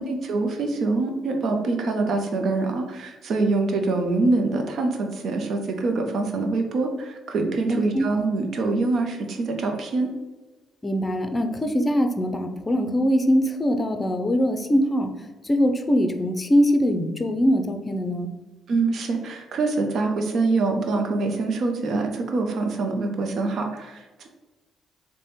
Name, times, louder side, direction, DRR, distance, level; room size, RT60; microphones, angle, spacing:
voice 1, 0.0-10.1 18.7-24.3, right 3 dB, 65° right, 3 dB, 0.6 m, -25 dB
voice 2, 7.7-8.1 10.8-15.1 15.4-18.3, equal, 25° left, 5 dB, 0.5 m, -22 dB
3.3 x 2.2 x 4.1 m, 1.2 s
supercardioid pair, 60°, 0 cm